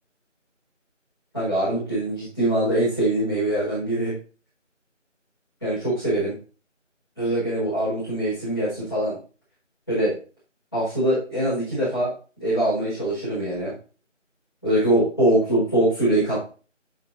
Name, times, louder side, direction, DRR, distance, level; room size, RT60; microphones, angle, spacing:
voice 1, 1.3-4.1 5.6-6.3 7.2-9.2 9.9-10.1 10.7-12.1 12.4-13.7 14.6-16.4, right 1 dB, 20° left, -14 dB, 4.4 m, -23 dB
10.5 x 5.4 x 3.3 m, 0.37 s
figure-of-eight pair, 180°, 38 cm